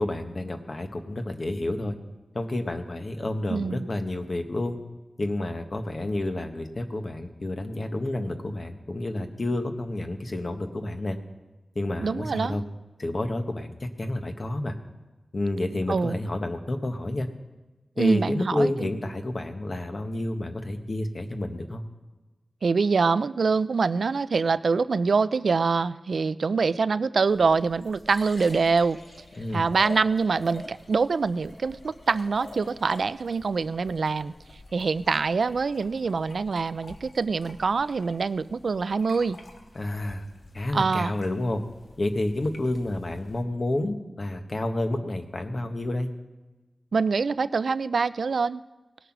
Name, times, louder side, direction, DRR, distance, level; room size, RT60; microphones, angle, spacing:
voice 1, 0.0-2.0 2.3-4.8 5.2-11.2 11.7-12.6 13.0-14.7 15.3-17.3 18.0-21.8 29.4-29.7 39.7-40.2 40.5-41.6 42.0-46.1, left 1 dB, 50° left, 6 dB, 1.3 m, -29 dB
voice 2, 3.5-3.9 12.0-12.6 15.9-16.2 18.0-18.9 22.6-29.0 29.5-34.3 34.7-39.4 40.7-41.1 46.9-48.6, right 4 dB, 80° right, 15 dB, 0.4 m, -25 dB
sound 1, 27.3-43.4, left 2 dB, 70° left, 1.5 m, -47 dB
18.5 x 8.1 x 6.0 m, 1.2 s
wide cardioid pair, 70°, 0 cm